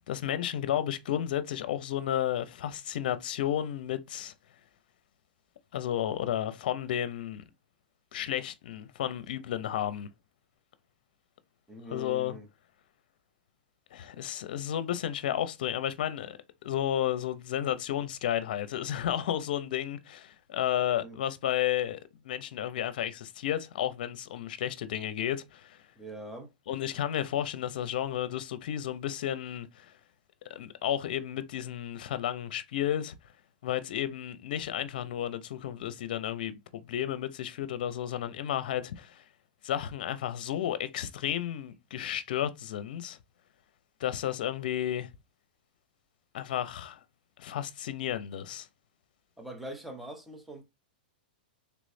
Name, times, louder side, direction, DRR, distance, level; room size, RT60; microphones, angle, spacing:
voice 1, 0.1-4.3 5.7-7.4 8.1-10.1 11.9-12.3 13.9-16.4 16.6-25.8 26.7-29.9 30.5-33.1 33.6-39.2 39.6-43.2 44.0-45.1 46.3-47.0 47.4-48.7, left 11 dB, 65° left, 0.6 m, -32 dB
voice 2, 11.7-12.5 21.0-21.2 26.0-26.5 49.4-50.6, equal, ahead, 0.8 m, -43 dB
3.4 x 3.0 x 2.6 m
hypercardioid pair, 140°, 5 cm